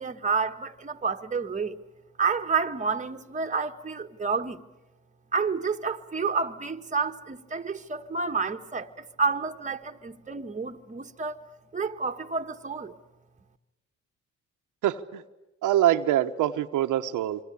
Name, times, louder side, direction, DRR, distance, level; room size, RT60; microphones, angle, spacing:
voice 1, 0.0-1.8 2.2-4.6 5.3-11.4 11.7-12.9, right 5 dB, 25° right, 1.5 m, -29 dB
voice 2, 14.8-15.2 15.6-17.4, right 12 dB, 85° right, 1.1 m, -24 dB
27.0 x 24.5 x 8.5 m
cardioid pair, 90°, 30 cm